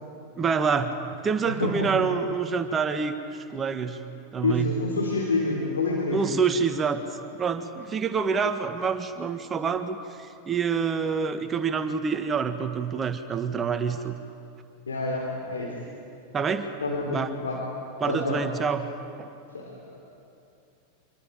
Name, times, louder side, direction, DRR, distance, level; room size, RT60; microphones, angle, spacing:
voice 1, 0.4-4.0 4.3-4.7 6.1-7.0 7.4-14.2 16.3-16.7 17.1-17.3 18.0-18.9 19.2-19.3, right 5 dB, 25° right, 8 dB, 1.7 m, -27 dB
voice 2, 1.5-1.9 4.4-6.2 14.9-15.8 16.8-17.6 18.1-18.4 19.5-20.0, left 3 dB, 80° left, -1 dB, 3.8 m, -28 dB
26.0 x 22.5 x 9.1 m, 2.5 s
figure-of-eight pair, 90°, 0 cm